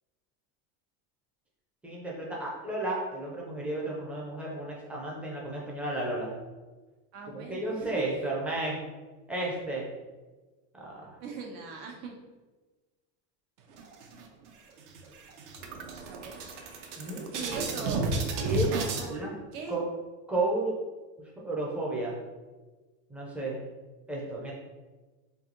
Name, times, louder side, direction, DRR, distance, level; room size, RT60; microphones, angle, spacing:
voice 1, 1.8-6.3 7.3-8.8 9.3-9.9 10.8-11.1 17.0-17.3 18.4-18.7 19.1-19.3 19.7-19.8 20.3-20.8 21.4-22.2 23.1-23.6 24.1-24.5, right 2 dB, 5° right, -4 dB, 0.4 m, -32 dB
voice 2, 7.1-8.2 11.2-12.2 16.1-16.4 17.3-18.1 19.0-19.8, right 4 dB, 80° right, 0 dB, 1.1 m, -40 dB
sound 1, 13.7-14.5 14.9-15.0 15.3-19.1, right 3 dB, 65° right, 0.7 m, -32 dB
3.3 x 2.7 x 3.8 m, 1.3 s
cardioid pair, 170°, 38 cm